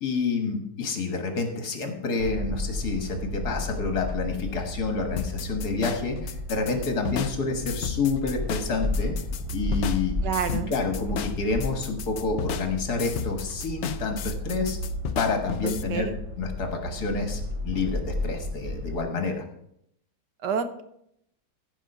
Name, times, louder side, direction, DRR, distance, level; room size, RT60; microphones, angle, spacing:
voice 1, 0.0-9.1 9.5-10.2 10.7-14.8 15.2-16.1 16.4-19.4, left 4 dB, 60° left, 5 dB, 2.0 m, -28 dB
sound 1, 2.2-19.0, left 1 dB, 25° right, 0.8 m, -33 dB
sound 2, 5.2-15.8, left 8 dB, 85° left, 0.6 m, -34 dB
voice 2, 10.2-10.7 15.6-16.1 20.4-20.8, right 7 dB, 75° right, 10 dB, 1.4 m, -29 dB
15.0 x 5.1 x 5.5 m, 0.74 s
omnidirectional pair, 1.9 m